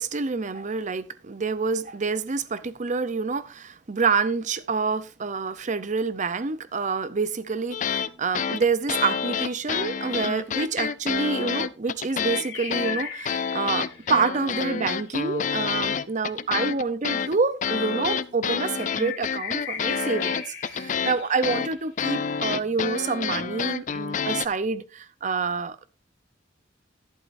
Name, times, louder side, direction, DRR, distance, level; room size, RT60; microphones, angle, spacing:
voice 1, 0.0-25.8, right 4 dB, 40° right, 0.6 m, -27 dB
sound 1, 7.7-8.1 8.3-12.4 12.7-24.5, left 6 dB, 40° left, 0.4 m, -28 dB
sound 2, 10.3-10.4 12.1-15.4 18.5-22.4, left 7 dB, 65° left, 3.0 m, -38 dB
11.5 x 11.0 x 2.6 m
head